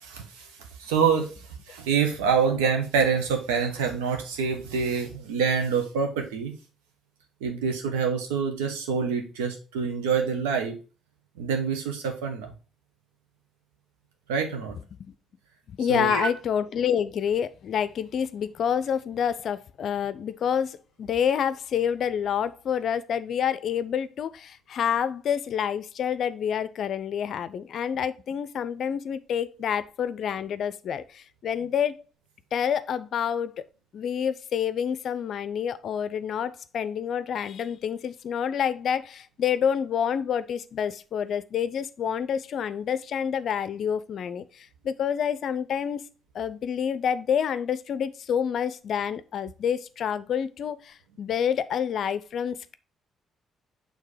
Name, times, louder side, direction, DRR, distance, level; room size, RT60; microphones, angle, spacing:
voice 1, 0.0-0.5 0.8-1.3 1.7-6.5 7.4-10.8 11.4-12.5 14.3-14.8 15.9-16.3, right 6 dB, 80° right, 1.1 m, -26 dB
voice 2, 15.7-32.0 32.5-33.6 33.9-46.0 46.3-52.8, left 8 dB, 60° left, 0.5 m, -28 dB
6.5 x 3.3 x 4.9 m
hypercardioid pair, 45°, 0 cm